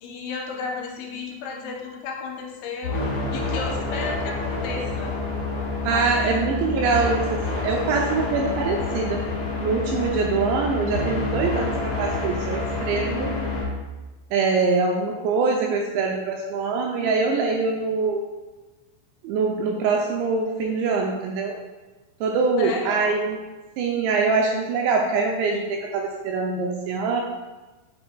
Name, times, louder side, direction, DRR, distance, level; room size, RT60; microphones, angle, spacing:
voice 1, 0.0-3.0 3.3-5.2 5.9-6.4 22.6-23.2, left 4 dB, 85° left, 0 dB, 3.0 m, -33 dB
sound 1, 2.8-13.6, left 3 dB, 65° left, 1.5 m, -28 dB
voice 2, 5.8-9.2 9.6-13.4 14.3-18.2 19.2-21.6 22.2-23.4 23.8-27.2, right 4 dB, 85° right, 0 dB, 2.6 m, -24 dB
7.8 x 5.5 x 2.2 m, 1.2 s
omnidirectional pair, 5.5 m